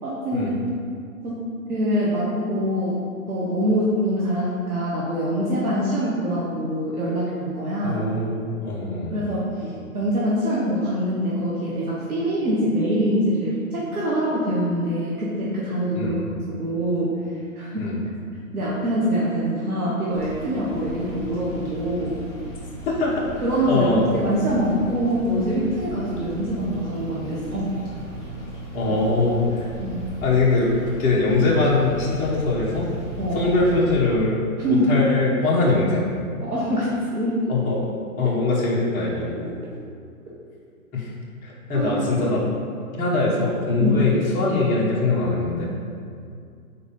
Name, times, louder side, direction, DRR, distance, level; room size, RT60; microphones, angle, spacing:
voice 1, 0.0-0.5 1.2-1.4 1.7-3.0 3.3-8.0 9.1-16.2 16.5-17.1 17.5-17.9 18.5-22.1 23.4-27.8 28.8-28.9 29.8-30.0 33.2-33.5 34.6-34.9 36.4-37.5 41.7-42.1 43.8-44.0, equal, 80° right, -7 dB, 1.5 m, -24 dB
voice 2, 7.8-9.1 9.6-9.7 15.9-16.2 17.8-18.0 22.8-23.3 23.7-24.1 28.7-29.7 30.2-30.7 31.0-32.9 33.3-34.4 34.7-36.1 37.5-37.9 38.2-39.3 40.9-41.1 41.4-42.4 43.0-45.7, left 3 dB, 20° left, -5 dB, 1.2 m, -22 dB
sound 1, 20.1-34.0, equal, ahead, 0.4 m, -36 dB
4.7 x 4.1 x 5.5 m, 2.3 s
hypercardioid pair, 135°, 43 cm